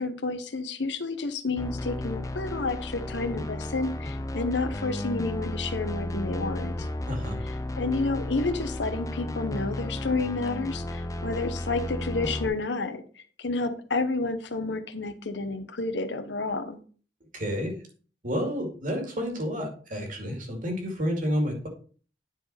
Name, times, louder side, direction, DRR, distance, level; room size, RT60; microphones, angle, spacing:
voice 1, 0.0-6.9 7.4-16.8, left 3 dB, 85° left, 9 dB, 0.9 m, -30 dB
sound 1, 1.6-12.5, left 1 dB, 20° left, 0.5 m, -33 dB
voice 2, 7.1-7.4 17.3-17.7 18.2-21.7, equal, 50° right, 2 dB, 2.4 m, -30 dB
9.6 x 4.7 x 4.2 m, 0.41 s
head